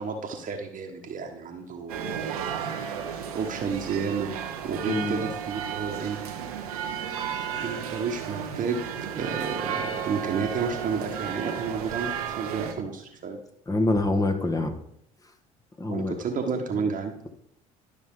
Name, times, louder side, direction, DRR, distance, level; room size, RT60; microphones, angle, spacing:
voice 1, 0.0-2.8 3.3-4.3 4.6-6.2 7.6-8.8 9.1-13.4 15.9-17.1, right 5 dB, 45° right, 2 dB, 1.4 m, -31 dB
sound 1, 1.9-12.7, right 8 dB, 80° right, 1.1 m, -33 dB
voice 2, 4.9-5.3 13.7-14.8 15.8-16.1, left 2 dB, 20° left, 5 dB, 1.6 m, -25 dB
12.0 x 6.2 x 3.8 m, 0.72 s
hypercardioid pair, 60°, 19 cm